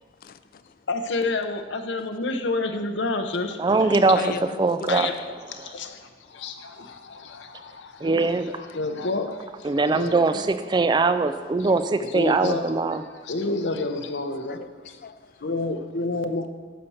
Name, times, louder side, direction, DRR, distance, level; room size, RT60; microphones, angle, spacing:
voice 1, 0.2-0.8 4.2-5.2 5.6-5.8 6.2-7.6 9.2-9.3 14.5-15.4, left 5 dB, 50° left, 0.4 m, -39 dB
voice 2, 0.9-3.6 4.9-5.1 5.6-8.1 8.6-9.4 9.9-10.5 12.1-12.7 13.3-14.6 15.4-16.5, left 3 dB, 85° left, 0.8 m, -29 dB
voice 3, 3.6-4.3 4.6-5.2 5.4-5.7 8.0-8.6 9.6-13.0, right 3 dB, 25° right, 0.4 m, -22 dB
10.0 x 4.2 x 7.0 m
head